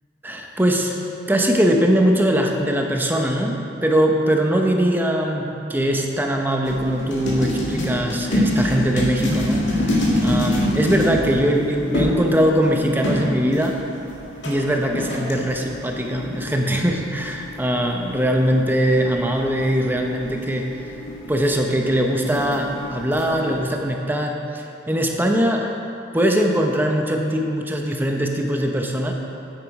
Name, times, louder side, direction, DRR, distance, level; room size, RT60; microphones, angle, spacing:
voice 1, 0.2-0.9 1.3-13.8 14.4-20.7 21.3-25.7 26.1-29.1, equal, 10° right, 1 dB, 0.8 m, -21 dB
sound 1, 6.6-23.6, left 1 dB, 75° left, 1.9 m, -27 dB
9.4 x 9.0 x 4.8 m, 2.9 s
head